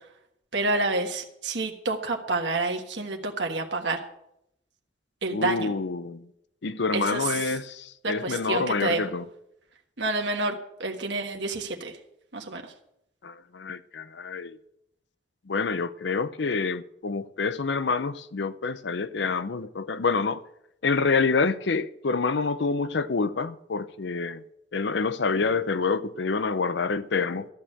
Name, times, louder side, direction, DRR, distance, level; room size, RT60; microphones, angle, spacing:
voice 1, 0.5-4.0 5.2-5.7 6.9-7.3 8.0-9.0 10.0-11.9 12.3-12.6, right 2 dB, 80° right, 1.5 m, -28 dB
voice 2, 5.3-6.3 6.6-9.3 13.2-14.6 15.5-20.4 20.8-24.4 24.7-27.5, left 4 dB, 75° left, 0.6 m, -27 dB
14.0 x 6.5 x 8.9 m
head